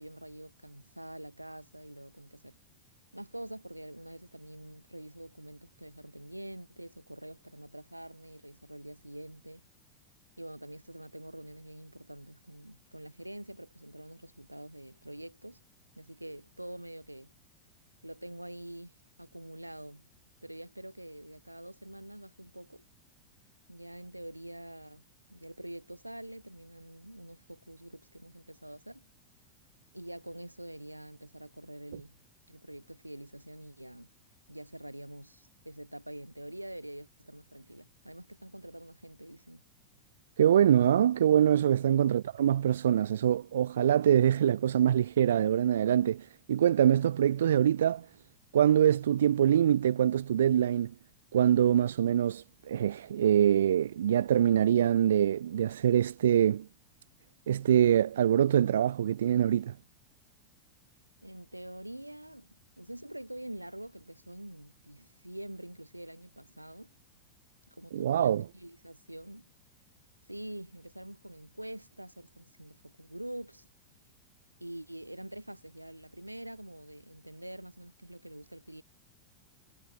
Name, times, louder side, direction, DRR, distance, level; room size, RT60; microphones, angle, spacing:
voice 1, 0.0-2.6 3.1-9.6 10.4-15.6 16.0-17.3 18.0-20.1 20.4-22.8 23.7-25.0 25.3-29.0 29.9-32.2 32.5-34.1 34.5-39.6 41.8-42.0 61.2-62.5 62.8-66.9 67.8-69.5 70.3-73.7 74.6-78.8, right 1 dB, 85° right, 5.8 m, -45 dB
voice 2, 40.4-48.1 48.5-50.9 51.3-56.7 57.5-59.7 67.9-68.4, right 10 dB, 65° right, 0.8 m, -24 dB
figure-of-eight pair, 90°, 0 cm